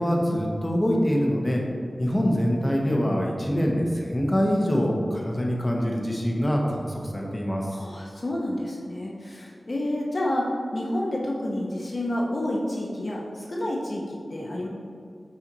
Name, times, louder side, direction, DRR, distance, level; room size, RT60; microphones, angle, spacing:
voice 1, 0.0-1.6 2.0-7.7, equal, 15° left, -1 dB, 0.9 m, -24 dB
voice 2, 7.7-10.4 10.7-14.7, left 1 dB, 45° left, -2 dB, 0.7 m, -29 dB
5.8 x 4.1 x 3.9 m, 2.3 s
wide cardioid pair, 85°, 0 cm